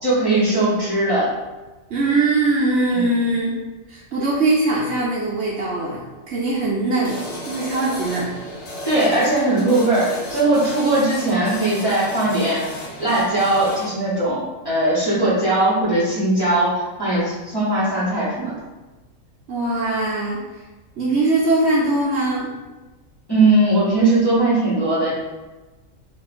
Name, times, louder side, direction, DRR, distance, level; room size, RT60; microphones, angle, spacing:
voice 1, 0.0-1.3 2.9-3.1 8.8-12.7 13.0-18.5 23.3-25.1, right 2 dB, 20° left, -10 dB, 1.1 m, -19 dB
voice 2, 1.9-3.6 3.9-8.3 19.5-20.4 21.0-22.5, right 2 dB, 60° right, -5 dB, 0.8 m, -21 dB
sound 1, 7.0-13.9, left 1 dB, 40° left, 0.7 m, -34 dB
2.9 x 2.4 x 4.2 m, 1.2 s
omnidirectional pair, 1.4 m